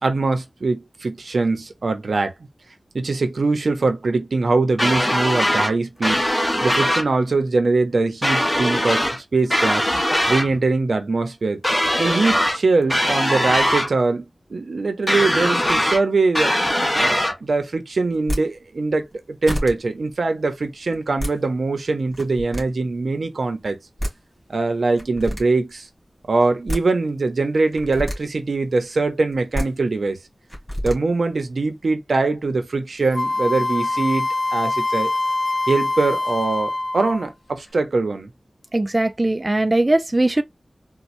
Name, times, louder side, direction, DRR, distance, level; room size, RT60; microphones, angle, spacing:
voice 1, 0.0-2.3 2.9-6.2 6.6-9.8 10.3-11.6 12.0-14.2 14.5-16.5 16.9-19.0 19.4-23.8 24.5-25.9 26.3-30.2 30.8-35.1 35.7-38.3, right 3 dB, 85° right, 0.7 m, -22 dB
sound 1, 4.8-5.7 6.0-7.1 8.2-9.2 9.5-10.5 11.6-12.6 12.9-13.9 15.1-16.0 16.3-17.3, equal, 20° left, 1.0 m, -20 dB
sound 2, 18.1-18.4 19.1-19.2 19.5-19.7 20.9-21.3 22.1-22.6 23.7-23.8 24.0-24.1 25.0-25.4 26.4-26.8 27.7-28.2 29.3-29.7 30.5-31.0, equal, 5° right, 2.1 m, -27 dB
Wind instrument woodwind instrument, 33.1-37.3, left 2 dB, 40° left, 0.5 m, -24 dB
voice 2, 38.7-40.4, right 2 dB, 25° right, 0.4 m, -19 dB
4.3 x 2.2 x 2.6 m
wide cardioid pair, 80°, 0 cm